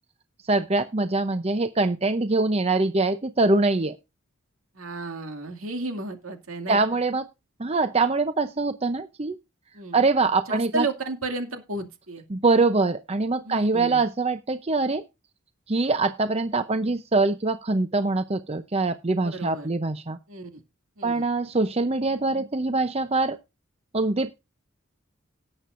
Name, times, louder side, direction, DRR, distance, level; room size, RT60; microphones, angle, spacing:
voice 1, 0.5-4.0 6.7-7.2 7.6-9.4 9.9-10.9 12.3-15.0 15.7-20.2 21.0-23.4 23.9-24.3, right 3 dB, 30° right, 10 dB, 0.6 m, -23 dB
voice 2, 4.7-7.0 9.7-10.0 10.5-12.2 13.4-14.0 19.2-19.7 20.3-20.6 21.0-21.3, right 2 dB, 80° right, 5 dB, 2.3 m, -33 dB
18.0 x 7.8 x 2.5 m, 0.25 s
head